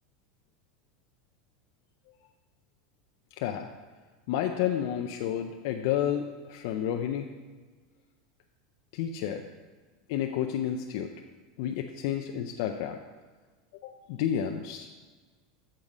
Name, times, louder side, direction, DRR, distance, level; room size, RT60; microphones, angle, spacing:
voice 1, 3.4-3.7 4.3-7.3 8.9-9.4 10.1-11.1 11.6-13.0 13.8-15.0, left 10 dB, 60° left, 3 dB, 0.4 m, -30 dB
7.5 x 4.9 x 5.4 m, 1.4 s
supercardioid pair, 155°, 2 cm